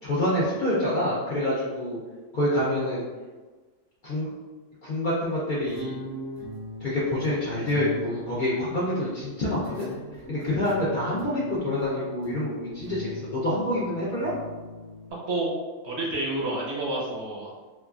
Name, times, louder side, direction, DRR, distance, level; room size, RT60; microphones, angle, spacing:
voice 1, 0.0-2.0 2.3-3.0 4.0-4.3 4.8-5.9 6.8-9.9 10.3-14.3, left 1 dB, 55° left, -8 dB, 0.6 m, -27 dB
sound 1, 5.6-15.1, left 1 dB, 90° right, 1.2 m, -40 dB
voice 2, 15.1-15.5 15.8-17.5, right 2 dB, 60° right, -5 dB, 0.9 m, -29 dB
3.0 x 2.3 x 2.3 m, 1.3 s
omnidirectional pair, 1.4 m